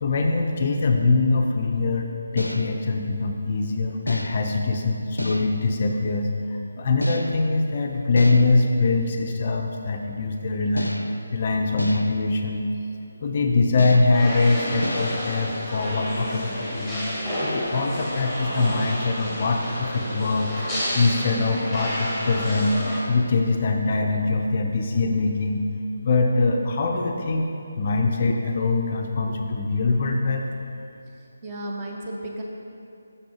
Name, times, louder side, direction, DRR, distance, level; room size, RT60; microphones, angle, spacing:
voice 1, 0.0-2.1 2.3-12.7 13.2-17.0 17.4-20.5 20.9-22.8 23.1-25.7 26.0-27.5 27.8-30.4, left 3 dB, 35° left, 3 dB, 0.4 m, -23 dB
sound 1, 2.4-2.9 4.1-4.6 5.2-5.7 7.0-7.6 8.2-8.7 10.8-11.3 11.8-12.3 13.8-14.3 14.8-15.2, equal, 85° left, 0.5 m, -31 dB
sound 2, 14.1-23.0, equal, ahead, 1.4 m, -30 dB
voice 2, 31.2-32.4, right 1 dB, 20° right, -2 dB, 0.8 m, -34 dB
6.5 x 5.9 x 4.9 m, 2.7 s
figure-of-eight pair, 150°, 0 cm